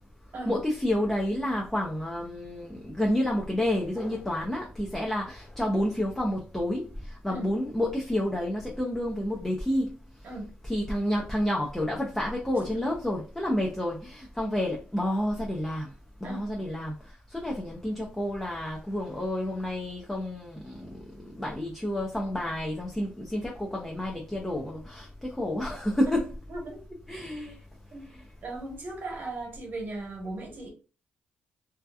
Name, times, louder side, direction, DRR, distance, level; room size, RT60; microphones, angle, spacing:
voice 1, 0.5-10.0 10.6-15.9 16.2-26.3 27.1-27.6 28.1-28.2, left 1 dB, 5° left, 0.6 m, -30 dB
voice 2, 28.4-30.7, right 2 dB, 55° right, 1.3 m, -37 dB
2.7 x 2.2 x 2.3 m
cardioid pair, 75°, 4 cm